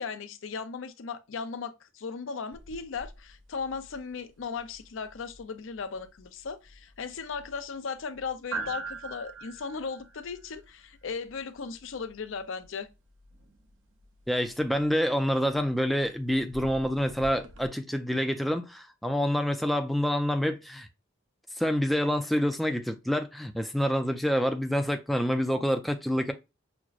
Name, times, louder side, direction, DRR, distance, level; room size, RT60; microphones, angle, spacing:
voice 1, 0.0-12.9, left 5 dB, 80° left, 0.5 m, -37 dB
sound 1, 2.5-17.7, right 4 dB, 85° right, 0.7 m, -46 dB
voice 2, 14.3-20.9 21.6-26.3, equal, ahead, 0.3 m, -27 dB
5.9 x 2.0 x 2.4 m
head